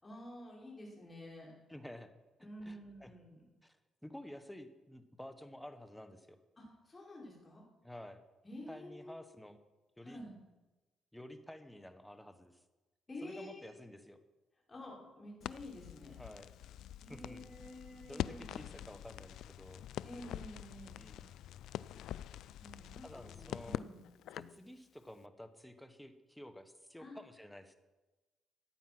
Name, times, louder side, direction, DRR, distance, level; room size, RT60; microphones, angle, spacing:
voice 1, 0.0-1.5 2.4-3.4 6.6-7.6 8.4-9.2 10.0-10.3 13.1-13.7 14.7-16.2 17.0-18.8 20.0-21.0 22.6-24.0 27.0-27.2, left 1 dB, 25° left, -3 dB, 5.2 m, -50 dB
voice 2, 1.7-2.1 2.6-3.1 3.6-3.8 4.0-6.4 7.8-8.2 8.7-9.6 10.0-10.2 11.1-12.6 13.2-14.2 16.2-16.5 17.1-17.5 18.1-19.9 20.9-21.3 23.0-23.8 24.3-27.8, left 1 dB, 5° left, 9 dB, 1.2 m, -51 dB
Crackle, 15.4-24.6, left 12 dB, 80° left, 0.3 m, -45 dB
14.5 x 9.2 x 6.0 m, 1.1 s
cardioid pair, 90°, 0 cm